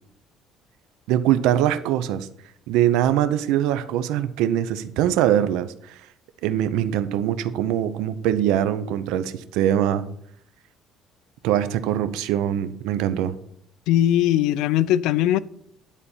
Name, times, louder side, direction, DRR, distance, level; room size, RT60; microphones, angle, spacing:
voice 1, 1.1-2.3 2.7-6.0 6.4-10.0 11.4-13.3, right 11 dB, 90° right, 0.7 m, -22 dB
voice 2, 13.9-15.4, left 12 dB, 85° left, 0.4 m, -20 dB
10.5 x 4.2 x 7.1 m
cardioid pair, 115°, 0 cm